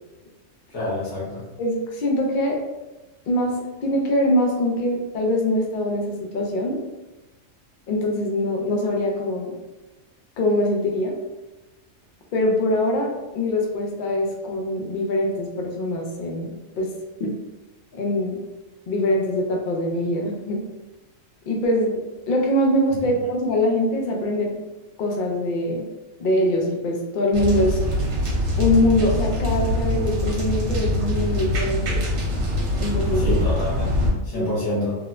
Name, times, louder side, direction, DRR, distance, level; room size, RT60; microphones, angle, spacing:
voice 1, 0.7-1.4 33.2-34.9, left 1 dB, 55° left, -7 dB, 1.3 m, -28 dB
voice 2, 1.6-2.6 3.3-3.5 3.8-6.8 7.9-9.5 10.4-11.1 12.3-16.9 17.2-17.3 17.9-18.4 18.9-20.6 21.5-24.5 25.0-25.9 26.2-27.8 28.6-32.0 32.8-33.5 34.3-34.5, left 1 dB, 80° left, 0 dB, 0.4 m, -23 dB
sound 1, 27.3-34.1, left 1 dB, 70° right, 1.1 m, -23 dB
3.0 x 2.0 x 2.3 m, 1.1 s
omnidirectional pair, 1.4 m